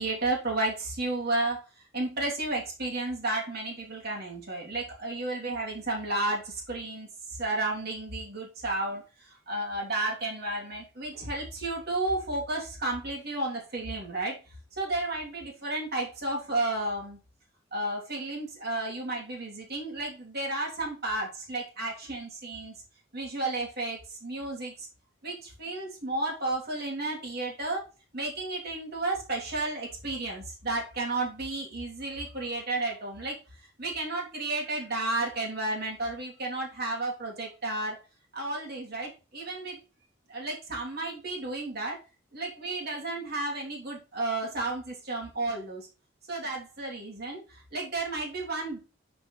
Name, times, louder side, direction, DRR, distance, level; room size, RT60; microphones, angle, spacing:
voice 1, 0.0-1.6 1.9-14.4 14.7-17.2 17.7-22.7 23.1-24.9 25.2-27.8 28.1-33.4 33.8-38.0 38.3-39.8 40.3-42.0 42.3-45.9 46.3-48.8, right 2 dB, 55° right, -2 dB, 3.1 m, -32 dB
11.0 x 5.1 x 3.3 m, 0.31 s
head